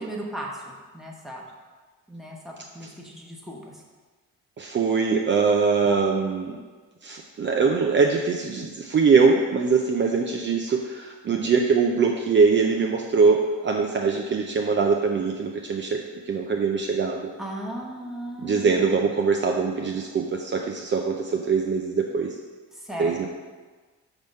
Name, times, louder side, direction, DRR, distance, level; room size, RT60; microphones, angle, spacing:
voice 1, 0.0-1.5 2.1-3.8 17.4-19.0 22.7-23.2, right 1 dB, ahead, -2 dB, 1.2 m, -36 dB
voice 2, 4.6-6.6 7.0-17.3 18.4-22.4 23.0-23.3, right 5 dB, 40° right, 1 dB, 0.5 m, -22 dB
6.0 x 3.5 x 5.3 m, 1.4 s
cardioid pair, 90°, 30 cm